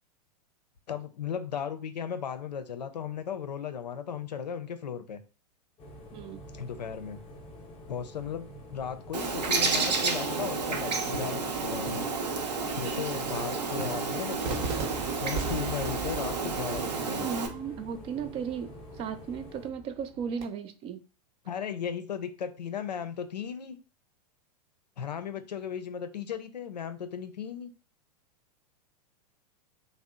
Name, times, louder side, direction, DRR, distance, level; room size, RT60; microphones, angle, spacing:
voice 1, 0.9-5.2 6.5-7.2 7.9-12.1 12.7-14.7 15.2-17.3 21.4-23.8 25.0-27.7, left 8 dB, 80° left, 0.5 m, -36 dB
sound 1, 5.8-19.7, equal, 25° left, 0.7 m, -47 dB
voice 2, 6.1-6.4 16.2-16.4 17.0-18.7 19.0-21.0, right 7 dB, 25° right, 0.4 m, -36 dB
Bird, 9.1-17.5, right 4 dB, 75° right, 0.7 m, -31 dB
Cheering / Fireworks, 14.4-20.4, right 4 dB, 50° right, 0.9 m, -40 dB
2.7 x 2.0 x 3.5 m
hypercardioid pair, 100°, 21 cm